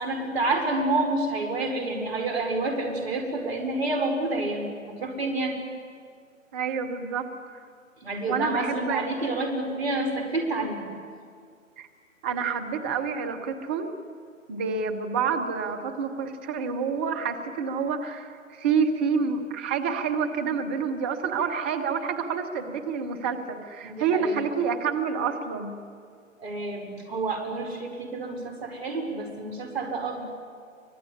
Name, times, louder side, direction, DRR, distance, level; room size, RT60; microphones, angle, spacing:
voice 1, 0.0-5.6 8.0-10.9 23.8-24.4 26.4-30.2, right 2 dB, 50° right, 4 dB, 5.3 m, -29 dB
voice 2, 6.5-7.3 8.2-9.0 11.8-11.9 12.2-13.9 14.5-25.8, right 6 dB, 10° right, 7 dB, 0.5 m, -28 dB
24.5 x 20.0 x 9.6 m, 2.1 s
figure-of-eight pair, 135°, 39 cm